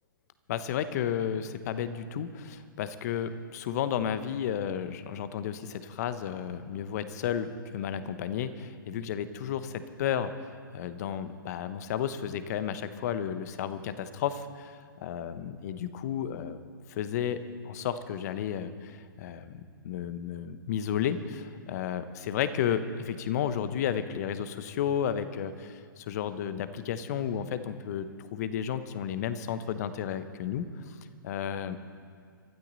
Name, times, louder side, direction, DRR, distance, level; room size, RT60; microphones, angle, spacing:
voice 1, 0.5-10.3 10.7-16.6 16.9-17.4 17.6-31.0 31.2-31.8, left 9 dB, 50° left, 12 dB, 1.0 m, -32 dB
22.5 x 13.0 x 4.1 m, 2.2 s
figure-of-eight pair, 115°, 12 cm